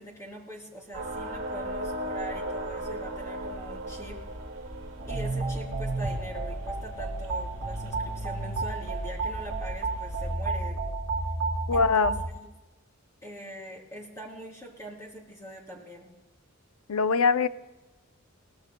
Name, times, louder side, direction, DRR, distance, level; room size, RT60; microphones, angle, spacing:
voice 1, 0.0-4.2 5.1-10.8 11.7-12.5 13.2-16.1, right 1 dB, 15° left, -2 dB, 3.3 m, -43 dB
sound 1, 0.9-10.4, right 1 dB, 80° right, 2.0 m, -38 dB
sound 2, 5.0-12.3, right 3 dB, 55° right, 2.8 m, -31 dB
voice 2, 11.7-12.2 16.9-17.5, left 5 dB, 85° left, 12 dB, 0.6 m, -23 dB
22.0 x 18.0 x 2.2 m, 1.1 s
head